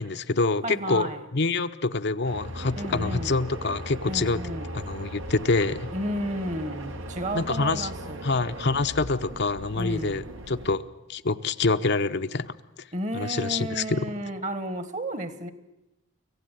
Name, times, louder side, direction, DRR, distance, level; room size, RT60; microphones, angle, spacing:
voice 1, 0.0-4.4 4.7-5.9 7.3-7.9 8.2-10.8 11.1-12.5 13.1-14.0, left 3 dB, 55° left, 9 dB, 0.7 m, -26 dB
voice 2, 0.6-1.2 2.8-3.4 4.1-4.7 5.9-8.4 9.7-10.2 12.9-15.5, right 1 dB, 40° right, 12 dB, 1.5 m, -32 dB
sound 1, 2.2-10.7, right 1 dB, 80° right, 1.8 m, -38 dB
25.0 x 16.0 x 9.2 m, 0.93 s
head